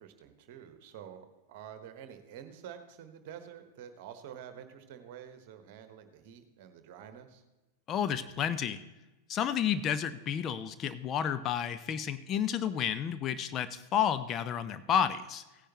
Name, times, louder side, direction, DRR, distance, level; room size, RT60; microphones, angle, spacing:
voice 1, 0.0-7.4, right 9 dB, 50° right, 8 dB, 1.3 m, -48 dB
voice 2, 7.9-8.8 9.3-15.4, left 8 dB, 30° left, 10 dB, 0.6 m, -31 dB
16.5 x 9.9 x 3.1 m, 1.1 s
figure-of-eight pair, 90°, 0 cm